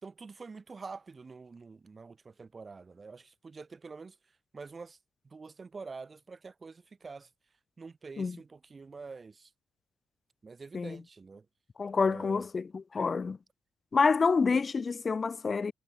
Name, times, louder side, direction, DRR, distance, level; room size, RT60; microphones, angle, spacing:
voice 1, 0.0-4.2 4.5-5.0 5.2-7.3 7.8-9.5 10.4-11.5 12.0-12.5, right 4 dB, 40° right, 4.1 m, -46 dB
voice 2, 11.8-13.4 13.9-15.7, left 5 dB, 45° left, 0.5 m, -28 dB
supercardioid pair, 55°, 0 cm